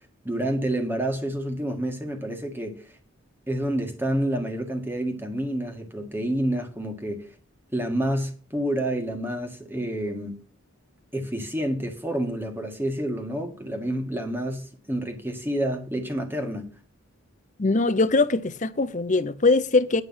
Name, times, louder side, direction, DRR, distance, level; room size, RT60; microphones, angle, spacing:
voice 1, 0.2-2.9 3.5-7.3 7.7-10.3 11.1-16.7, right 1 dB, 10° right, 1.7 m, -28 dB
voice 2, 17.6-20.0, left 3 dB, 35° left, 0.7 m, -22 dB
9.7 x 8.3 x 5.7 m
head